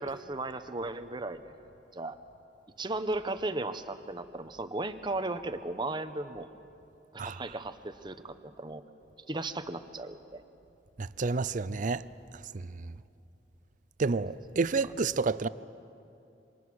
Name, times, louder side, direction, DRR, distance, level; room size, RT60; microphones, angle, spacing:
voice 1, 0.0-1.6 1.9-2.2 2.8-6.5 7.1-8.8 9.3-10.4, right 2 dB, 25° right, 1.0 m, -36 dB
voice 2, 11.0-12.1 12.5-12.9 14.0-15.5, right 4 dB, 45° right, 0.5 m, -30 dB
27.5 x 25.5 x 6.3 m
head